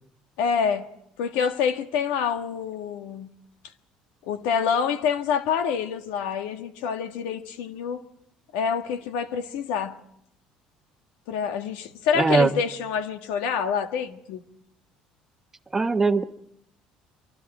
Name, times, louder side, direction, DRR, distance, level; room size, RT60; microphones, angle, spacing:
voice 1, 0.4-0.8 1.2-3.3 4.3-8.0 8.5-10.0 11.3-14.4, left 7 dB, 90° left, 7 dB, 1.7 m, -27 dB
voice 2, 12.1-12.5 15.7-16.2, right 4 dB, 15° right, 8 dB, 1.1 m, -20 dB
25.0 x 24.0 x 5.0 m, 0.74 s
cardioid pair, 115°, 2 cm